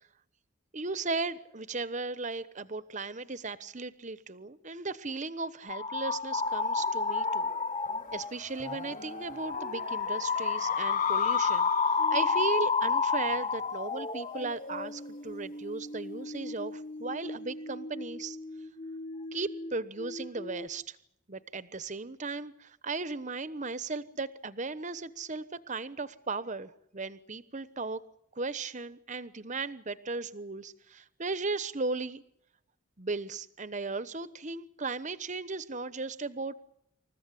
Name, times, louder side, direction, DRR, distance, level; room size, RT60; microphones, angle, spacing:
voice 1, 0.7-7.5 8.1-11.7 12.1-18.4 19.3-20.8 21.3-28.0 28.4-32.2 33.0-36.5, right 3 dB, 35° right, 14 dB, 1.1 m, -36 dB
sound 1, 5.7-8.3 8.6-9.0 9.4-19.7 20.0-20.7, left 4 dB, 25° left, 1.0 m, -32 dB
sound 2, 6.5-15.3, left 7 dB, 40° left, 5.5 m, -37 dB
28.5 x 15.0 x 9.9 m, 0.73 s
head